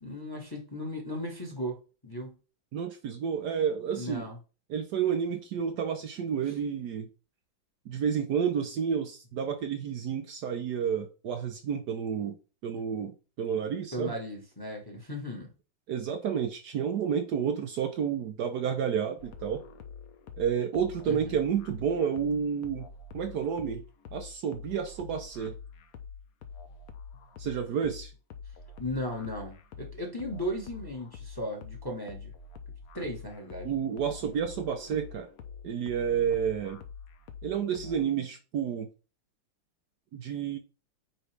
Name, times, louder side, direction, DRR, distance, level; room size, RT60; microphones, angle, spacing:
voice 1, 0.0-2.4 3.9-4.4 13.9-15.5 21.1-21.4 28.8-32.3 32.9-33.7, equal, 15° left, 1.3 m, -36 dB
voice 2, 2.7-4.3 4.7-7.1 7.9-12.4 12.6-14.2 15.9-19.6 20.4-22.9 23.1-23.8 24.1-25.5 27.4-28.1 33.6-35.3 35.6-36.8 37.4-38.9 40.1-40.6, right 7 dB, 65° right, 1.2 m, -30 dB
sound 1, 19.2-38.0, left 5 dB, 60° left, 1.1 m, -46 dB
8.9 x 3.9 x 3.4 m
omnidirectional pair, 2.1 m